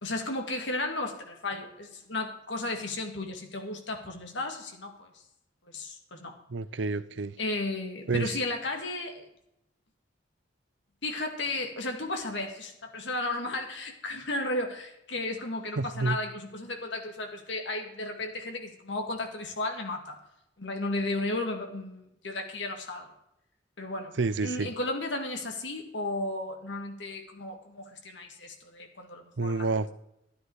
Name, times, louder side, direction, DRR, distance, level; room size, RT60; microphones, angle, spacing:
voice 1, 0.0-5.1 5.7-6.4 7.4-9.2 11.0-20.2 20.6-23.1 23.8-24.1 24.4-29.7, left 2 dB, 65° left, 3 dB, 2.3 m, -34 dB
voice 2, 6.5-7.3 8.1-8.3 15.8-16.2 24.2-24.7 29.4-29.9, right 3 dB, 70° right, 15 dB, 0.7 m, -29 dB
13.0 x 10.0 x 4.9 m, 0.81 s
head